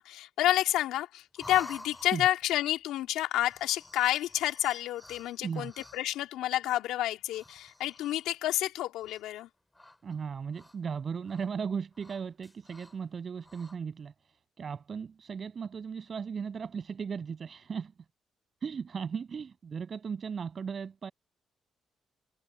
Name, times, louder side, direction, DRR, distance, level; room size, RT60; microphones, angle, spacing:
voice 1, 0.0-9.5, left 14 dB, 90° left, 3.0 m, -30 dB
sound 1, 1.4-2.5 3.4-6.2 7.2-8.4 9.0-9.4 9.7-10.9 11.2-11.5 11.9-13.0 13.4-13.8, left 1 dB, 10° left, 5.3 m, -50 dB
voice 2, 5.4-5.7 10.0-17.9 18.6-21.1, right 6 dB, 50° right, 7.2 m, -37 dB
cardioid pair, 75°, 0 cm